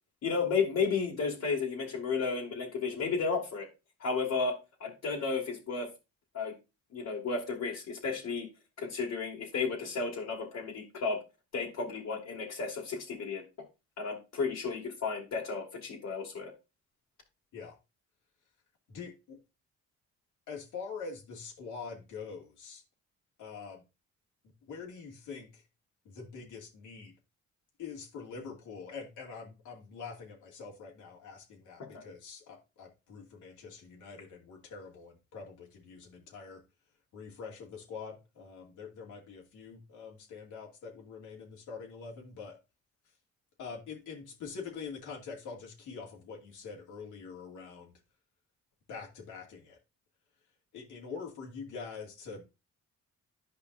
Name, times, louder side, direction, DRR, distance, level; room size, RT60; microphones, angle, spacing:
voice 1, 0.2-3.7 4.0-5.9 6.3-6.5 6.9-8.5 8.8-11.2 11.5-13.4 14.0-16.5 31.8-32.0, left 4 dB, 60° left, 2.3 m, -33 dB
voice 2, 18.9-19.4 20.5-22.8 23.4-23.8 24.7-25.6 26.0-27.1 27.8-36.6 37.1-42.6 43.6-47.9 48.9-49.8 50.7-52.4, left 5 dB, 85° left, 2.4 m, -44 dB
10.5 x 5.2 x 2.6 m
cardioid pair, 90°, 30 cm